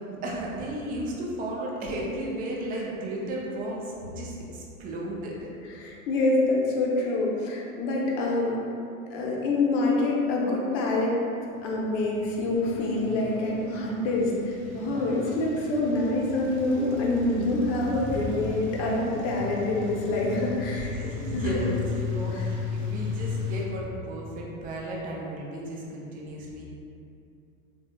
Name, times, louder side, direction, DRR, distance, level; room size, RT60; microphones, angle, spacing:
voice 1, 0.1-5.3 14.8-15.3 20.7-26.6, right 1 dB, 20° right, -3 dB, 0.4 m, -34 dB
voice 2, 5.6-8.6 9.1-11.2 11.6-20.9 21.3-21.5 22.3-22.5, left 2 dB, 50° left, -2 dB, 0.7 m, -26 dB
sound 1, 11.7-23.6, left 5 dB, 35° right, 0.8 m, -36 dB
3.1 x 2.7 x 2.2 m, 2.6 s
hypercardioid pair, 95°, 42 cm